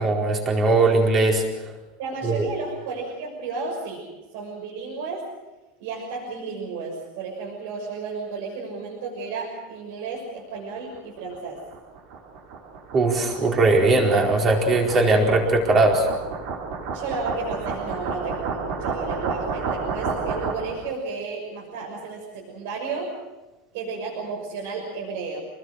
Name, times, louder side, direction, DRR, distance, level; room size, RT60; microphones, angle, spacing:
voice 1, 0.0-1.4 2.2-2.5 12.9-16.1, right 2 dB, 20° right, 0 dB, 4.4 m, -19 dB
voice 2, 2.0-4.0 4.3-5.3 5.8-11.6 16.9-23.1 23.7-25.4, right 4 dB, 65° right, -1 dB, 6.3 m, -32 dB
sound 1, 10.9-20.9, right 4 dB, 45° right, 4.4 m, -32 dB
28.0 x 20.5 x 6.4 m, 1.1 s
supercardioid pair, 175°, 0 cm